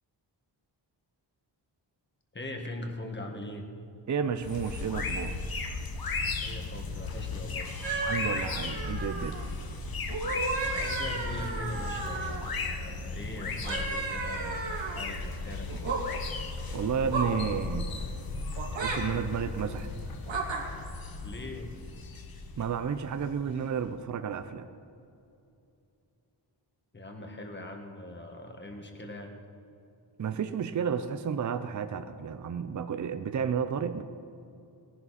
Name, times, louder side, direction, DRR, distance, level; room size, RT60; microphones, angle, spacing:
voice 1, 2.3-3.7 6.4-7.7 10.7-15.7 21.2-21.7 26.9-29.3, left 1 dB, 25° left, 3 dB, 1.6 m, -41 dB
voice 2, 4.1-5.4 8.1-9.4 16.7-17.9 18.7-19.9 22.6-24.7 30.2-34.0, right 7 dB, 45° right, 10 dB, 0.5 m, -31 dB
sound 1, 4.4-23.8, left 3 dB, 55° left, 1.2 m, -36 dB
sound 2, 7.8-9.5 10.1-12.5 13.6-15.0 15.7-16.0 17.1-17.4 18.6-19.0 20.3-20.6, right 3 dB, 80° right, 2.9 m, -33 dB
20.0 x 11.0 x 4.2 m, 2.7 s
wide cardioid pair, 175°, 44 cm